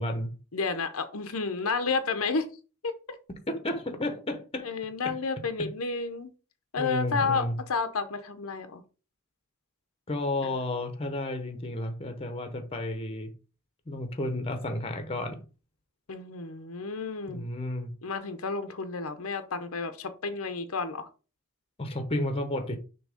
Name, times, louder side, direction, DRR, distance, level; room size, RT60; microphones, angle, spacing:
voice 1, 0.0-0.4 3.3-4.7 5.0-5.2 5.6-5.7 6.8-7.6 10.1-13.3 13.9-15.4 17.3-17.9 21.8-22.8, left 1 dB, 25° left, 0.9 m, -32 dB
voice 2, 0.5-2.5 2.8-2.9 4.6-6.3 6.7-8.8 10.4-10.5 16.1-17.4 18.0-21.1, left 4 dB, 75° left, 0.8 m, -31 dB
6.3 x 3.0 x 4.9 m
head